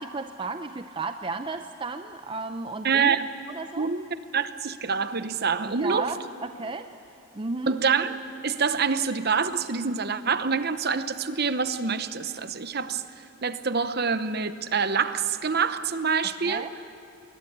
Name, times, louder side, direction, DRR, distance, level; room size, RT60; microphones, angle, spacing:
voice 1, 0.0-3.2 3.5-3.9 5.7-6.9 7.3-7.8 16.4-16.7, right 3 dB, 25° right, 8 dB, 0.5 m, -34 dB
voice 2, 2.8-3.3 3.8-6.1 7.7-13.0 13.4-16.7, right 5 dB, 50° right, 12 dB, 0.9 m, -26 dB
21.5 x 20.5 x 8.8 m, 2.8 s
head